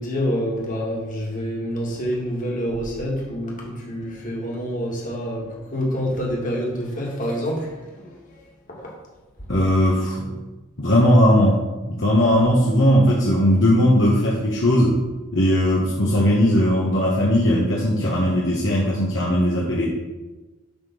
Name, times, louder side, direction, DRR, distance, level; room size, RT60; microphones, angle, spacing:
voice 1, 0.0-8.4 8.7-8.9, equal, 40° left, -3 dB, 2.0 m, -27 dB
voice 2, 9.5-10.3 10.8-15.0 15.3-19.9, equal, 55° left, -4 dB, 1.2 m, -18 dB
8.8 x 3.8 x 6.1 m, 1.1 s
head